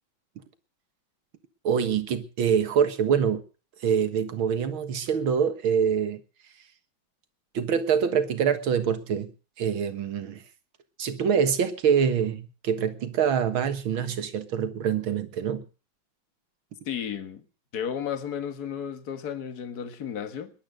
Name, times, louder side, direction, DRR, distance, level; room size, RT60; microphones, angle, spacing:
voice 1, 1.6-3.4 3.8-6.2 7.5-9.3 9.6-10.4 11.0-15.7, right 7 dB, 85° right, 2.3 m, -25 dB
voice 2, 16.9-17.4 17.7-20.5, left 8 dB, 50° left, 2.0 m, -33 dB
21.0 x 8.7 x 6.6 m
omnidirectional pair, 2.2 m